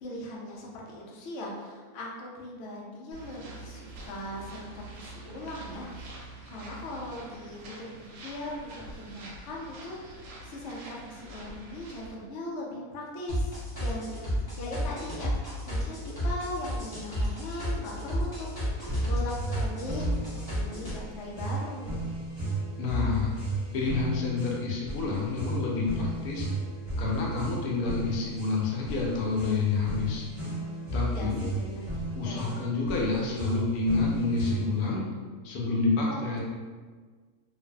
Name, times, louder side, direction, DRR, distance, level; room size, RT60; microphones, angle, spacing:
voice 1, 0.0-5.9 6.5-10.0 10.4-15.4 15.6-22.1 31.1-32.5 36.1-36.4, left 1 dB, 65° left, -3 dB, 0.8 m, -39 dB
sound 1, 3.1-12.1, right 2 dB, 70° right, 0.9 m, -45 dB
sound 2, 13.3-20.9, equal, 25° left, 0.5 m, -31 dB
sound 3, 18.9-34.9, right 2 dB, 20° right, 1.0 m, -34 dB
voice 2, 22.8-23.3 23.7-26.5 27.0-30.2 30.9-31.5 32.1-35.0 35.4-36.4, left 3 dB, 85° left, -3 dB, 1.1 m, -28 dB
2.5 x 2.4 x 2.2 m, 1.5 s
omnidirectional pair, 1.6 m